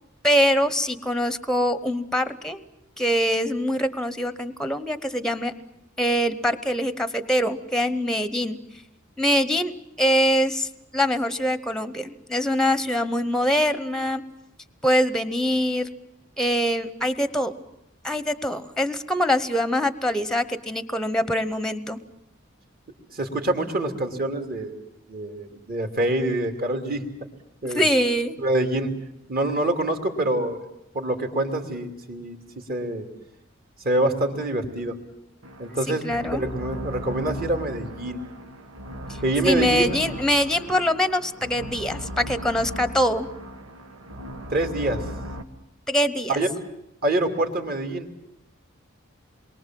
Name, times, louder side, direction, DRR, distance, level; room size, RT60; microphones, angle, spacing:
voice 1, 0.2-2.6 3.0-5.5 6.0-8.6 9.2-9.7 10.0-14.2 14.8-15.9 16.4-17.5 18.0-22.0 27.7-28.3 36.0-36.4 39.4-43.3 45.9-46.4, equal, 5° left, 13 dB, 0.9 m, -23 dB
voice 2, 23.1-24.8 25.1-27.0 27.6-27.8 28.4-28.9 29.3-30.6 30.9-32.4 32.7-33.1 33.8-34.9 35.6-38.2 39.2-40.0 44.5-45.0 46.3-46.5 47.0-48.1, right 1 dB, 45° right, 4 dB, 2.8 m, -25 dB
sound 1, 35.4-45.4, equal, 90° right, 1.9 m, -37 dB
28.0 x 23.0 x 7.6 m, 0.82 s
head